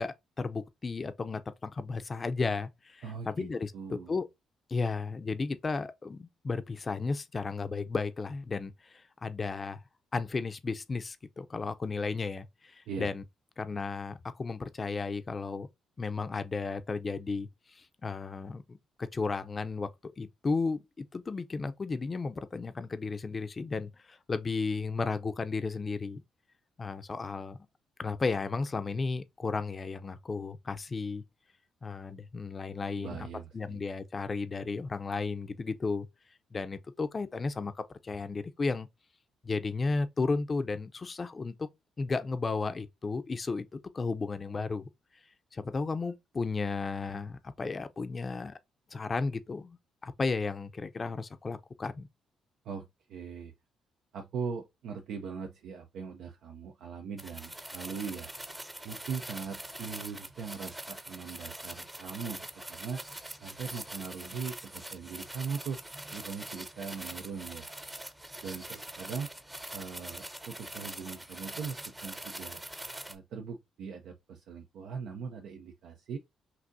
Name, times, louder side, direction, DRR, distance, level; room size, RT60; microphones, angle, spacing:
voice 1, 0.0-4.3 4.7-9.8 10.1-13.2 13.6-15.7 16.0-18.8 19.1-26.2 26.8-27.6 28.0-31.2 31.8-33.3 33.5-36.1 36.5-37.7 38.0-38.9 39.4-41.7 42.0-44.9 45.5-48.5 48.9-49.8 50.0-52.1, left 4 dB, 30° left, 0.5 m, -34 dB
voice 2, 3.0-4.1 12.9-13.1 33.0-33.8 52.6-53.5 54.1-58.3 58.8-63.0 63.4-65.8 66.1-67.7 68.4-69.3 69.7-72.6 73.1-76.2, right 6 dB, 80° right, 0.6 m, -40 dB
sound 1, 57.2-73.1, right 1 dB, 10° right, 0.7 m, -43 dB
6.0 x 2.6 x 2.6 m
cardioid pair, 90°, 0 cm